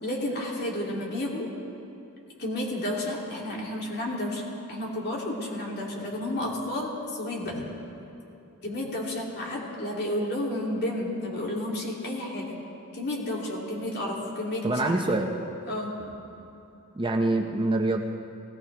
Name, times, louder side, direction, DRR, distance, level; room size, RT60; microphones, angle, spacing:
voice 1, 0.0-1.5 2.4-4.4 4.7-7.6 8.6-12.5 12.9-15.0 15.7-15.9, left 1 dB, 50° left, -3 dB, 2.8 m, -31 dB
voice 2, 14.6-15.3 16.9-18.0, right 2 dB, 20° right, 3 dB, 0.7 m, -25 dB
19.0 x 17.5 x 3.4 m, 2.8 s
head